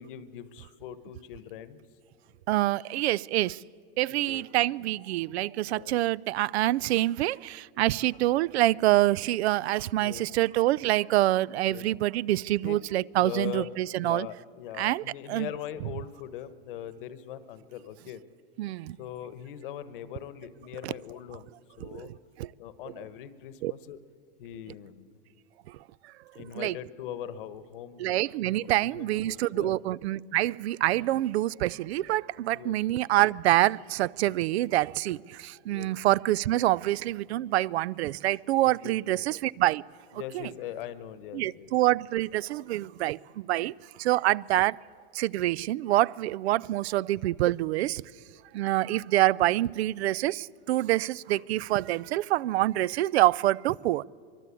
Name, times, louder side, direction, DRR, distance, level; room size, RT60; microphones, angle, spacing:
voice 1, 0.0-1.8 4.3-4.4 5.6-5.9 10.0-10.3 11.7-11.8 12.6-12.8 13.2-13.7 13.9-18.2 19.0-21.5 21.8-22.1 22.6-24.0 24.4-25.1 26.3-28.0 28.5-29.8 32.5-32.8 35.7-35.9 38.8-39.2 40.1-41.7, left 10 dB, 55° left, 1.2 m, -41 dB
voice 2, 2.5-3.5 4.0-7.4 7.8-14.3 14.8-15.0 15.3-15.5 18.6-18.8 20.8-20.9 23.6-23.7 26.6-26.7 28.0-35.2 35.7-39.8 40.3-40.5 41.3-43.2 43.5-43.7 44.1-44.7 45.2-48.0 48.5-50.4 50.7-54.0, right 16 dB, 90° right, 0.5 m, -26 dB
24.5 x 22.5 x 8.4 m
supercardioid pair, 180°, 31 cm